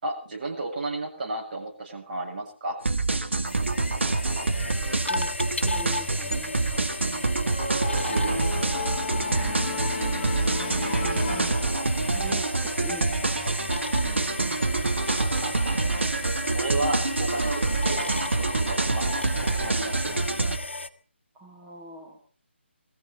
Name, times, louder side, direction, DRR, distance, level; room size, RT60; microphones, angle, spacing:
voice 1, 0.0-2.8 7.8-8.5 13.9-14.2 16.5-19.1 19.4-20.3, right 2 dB, 40° right, 0 dB, 7.7 m, -33 dB
sound 1, 2.9-20.6, right 3 dB, 70° right, 2.0 m, -26 dB
sound 2, 3.5-20.9, left 2 dB, 70° left, 1.2 m, -35 dB
voice 2, 5.1-6.9 9.3-9.8 10.6-11.6 12.1-13.2 21.3-22.2, right 1 dB, 10° right, -5 dB, 3.0 m, -42 dB
sound 3, 7.5-12.2, left 3 dB, 30° left, 6.1 m, -33 dB
22.5 x 15.0 x 4.1 m, 0.38 s
figure-of-eight pair, 150°, 7 cm